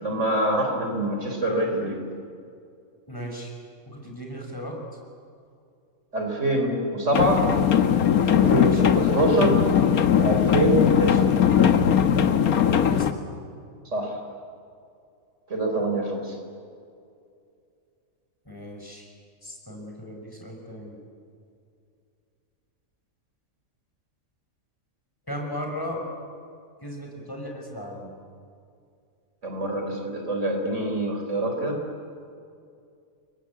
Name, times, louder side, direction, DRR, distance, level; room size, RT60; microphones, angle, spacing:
voice 1, 0.0-2.0 6.1-7.5 8.3-9.6 10.2-11.3 13.8-14.2 15.5-16.4 29.4-31.8, right 1 dB, 55° right, 3 dB, 4.5 m, -25 dB
voice 2, 3.1-3.5 3.9-4.8 8.6-9.0 11.0-11.4 12.7-13.3 18.4-19.1 19.4-21.0 25.3-26.0 26.8-28.1, equal, 15° left, 0 dB, 5.8 m, -36 dB
sound 1, 7.1-13.1, left 8 dB, 90° left, 1.5 m, -20 dB
30.0 x 23.0 x 8.5 m, 2.4 s
omnidirectional pair, 1.5 m